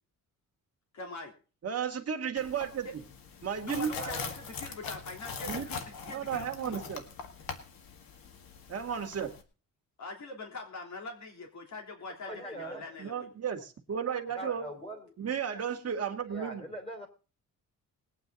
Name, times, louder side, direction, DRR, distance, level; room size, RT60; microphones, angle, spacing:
voice 1, 0.9-1.3 2.8-2.9 3.6-6.8 10.0-13.3, left 3 dB, 55° left, 2 dB, 3.6 m, -43 dB
voice 2, 1.6-2.9 3.4-3.9 5.4-5.7 6.1-7.0 8.7-9.3 13.0-14.7 15.2-16.7, right 7 dB, 45° right, 4 dB, 1.9 m, -33 dB
sound 1, 2.4-9.4, left 5 dB, 90° left, 1.9 m, -42 dB
voice 3, 3.9-4.4 12.2-13.0 14.3-15.1 16.3-17.1, right 1 dB, 15° left, 3 dB, 4.1 m, -41 dB
20.5 x 9.1 x 4.0 m, 0.35 s
cardioid pair, 135°, 34 cm